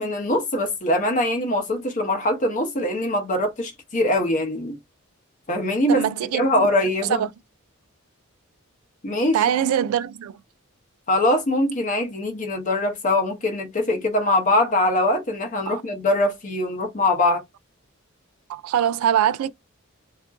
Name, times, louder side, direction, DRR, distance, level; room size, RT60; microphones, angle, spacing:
voice 1, 0.0-4.8 5.5-6.1 6.3-7.3 9.0-9.4 11.1-17.4, left 1 dB, 35° left, 0.7 m, -22 dB
voice 2, 5.9-6.7 7.1-7.3 9.3-10.4 15.7-15.8 18.5-19.5, right 9 dB, 85° right, 0.3 m, -23 dB
2.8 x 2.4 x 2.4 m
head